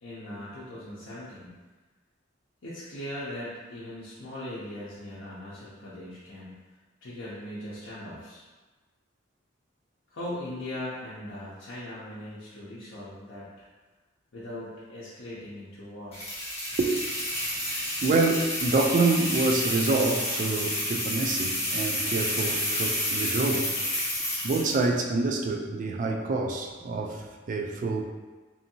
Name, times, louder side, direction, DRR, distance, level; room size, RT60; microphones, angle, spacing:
voice 1, 0.0-1.5 2.6-6.5 7.0-8.4 10.1-13.5 14.3-16.2, left 1 dB, 70° left, -11 dB, 0.6 m, -39 dB
sound 1, 16.1-24.8, left 1 dB, 35° left, 1.1 m, -30 dB
voice 2, 16.8-17.7 18.0-23.8 24.4-28.1, right 3 dB, 45° right, 1 dB, 0.3 m, -27 dB
2.7 x 2.6 x 2.7 m, 1.3 s
head